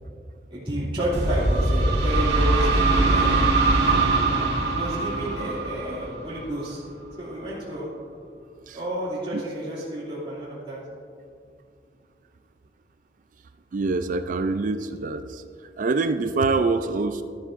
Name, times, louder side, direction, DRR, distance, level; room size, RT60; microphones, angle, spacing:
voice 1, 0.5-3.5 4.7-6.8 7.2-7.9 8.7-10.8, right 1 dB, 30° right, -9 dB, 2.5 m, -30 dB
sound 1, 1.1-6.8, right 2 dB, 70° right, 2.0 m, -22 dB
voice 2, 13.7-15.4 15.8-17.2, right 3 dB, 50° right, 9 dB, 0.4 m, -25 dB
12.5 x 12.0 x 2.5 m, 2.4 s
head